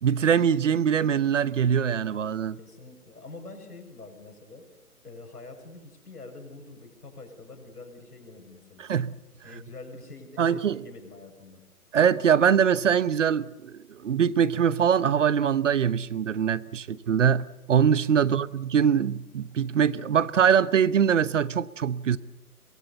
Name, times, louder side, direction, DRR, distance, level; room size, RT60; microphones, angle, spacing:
voice 1, 0.0-2.6 8.8-9.1 10.4-10.8 11.9-22.2, right 8 dB, 55° right, 18 dB, 0.9 m, -23 dB
voice 2, 2.6-4.6 5.0-8.9 9.4-11.6 18.2-18.4, left 3 dB, 80° left, 5 dB, 7.1 m, -45 dB
23.5 x 22.0 x 7.0 m, 0.92 s
figure-of-eight pair, 140°, 45 cm